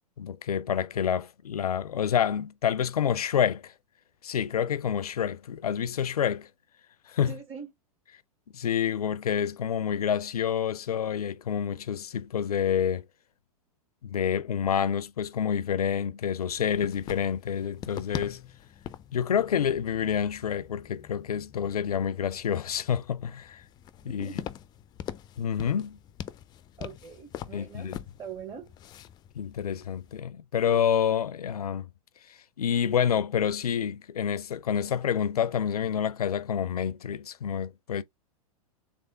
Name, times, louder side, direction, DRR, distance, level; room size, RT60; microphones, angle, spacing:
voice 1, 0.2-3.7 4.2-6.5 7.1-7.3 8.5-13.0 14.0-18.4 19.1-23.6 24.1-24.3 25.4-26.0 27.5-28.0 29.4-31.9 32.3-38.0, left 8 dB, 90° left, 0.5 m, -28 dB
voice 2, 7.3-7.7 24.0-24.4 26.8-27.9 28.2-28.7, right 6 dB, 30° right, 1.4 m, -42 dB
sound 1, 16.5-30.2, left 10 dB, 25° left, 0.3 m, -43 dB
3.4 x 3.4 x 3.7 m
hypercardioid pair, 110°, 19 cm